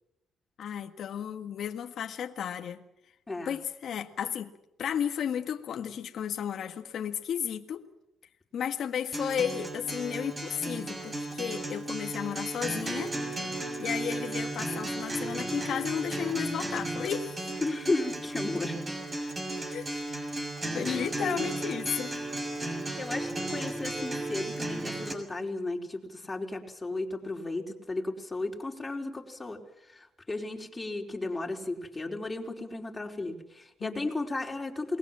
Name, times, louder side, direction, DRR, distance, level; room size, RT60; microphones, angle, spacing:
voice 1, 0.6-2.8 3.4-4.5 4.8-7.8 8.5-13.1 13.8-17.5 19.7-20.0 20.7-22.1 33.8-34.1, left 8 dB, 65° left, 5 dB, 1.7 m, -33 dB
Acoustic guitar, 9.1-25.1, right 1 dB, 25° right, 6.5 m, -34 dB
voice 2, 17.6-19.2 20.7-20.9 21.2-21.4 23.0-35.0, left 2 dB, 20° left, 1 dB, 4.5 m, -34 dB
28.5 x 20.5 x 7.6 m, 0.81 s
cardioid pair, 90°, 0 cm